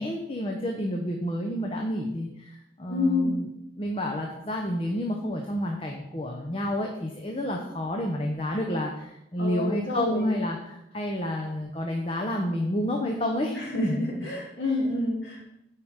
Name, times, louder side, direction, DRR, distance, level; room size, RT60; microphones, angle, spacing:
voice 1, 0.0-3.5 3.8-14.3, equal, 30° left, 1 dB, 0.7 m, -30 dB
voice 2, 2.9-3.4 9.4-10.3 13.5-15.5, left 3 dB, 85° left, -3 dB, 2.7 m, -28 dB
8.7 x 4.8 x 5.0 m, 0.85 s
head